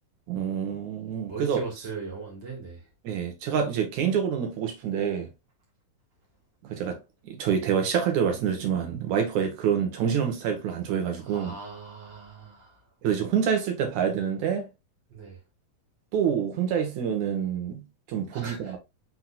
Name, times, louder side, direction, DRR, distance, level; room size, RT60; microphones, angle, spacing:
voice 1, 0.3-1.6 3.0-5.3 6.6-7.0 7.2-11.5 13.0-14.7 16.1-18.8, right 8 dB, 65° right, 2.4 m, -27 dB
voice 2, 1.1-2.8 11.2-12.8 15.1-15.4 18.3-18.8, right 4 dB, 45° right, 1.8 m, -39 dB
6.0 x 3.8 x 2.3 m
omnidirectional pair, 4.0 m